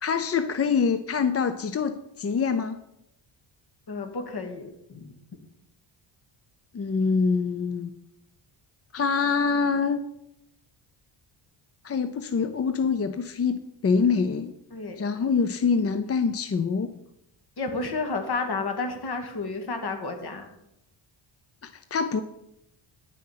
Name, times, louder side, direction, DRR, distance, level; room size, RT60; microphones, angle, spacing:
voice 1, 0.0-2.8 6.7-7.9 8.9-10.0 11.8-14.5 15.0-16.9 21.6-22.2, left 5 dB, 30° left, 10 dB, 0.5 m, -25 dB
voice 2, 3.9-5.2 14.7-15.0 17.6-20.5, left 3 dB, 50° left, 5 dB, 2.1 m, -31 dB
9.8 x 7.5 x 5.7 m, 0.85 s
cardioid pair, 115°, 49 cm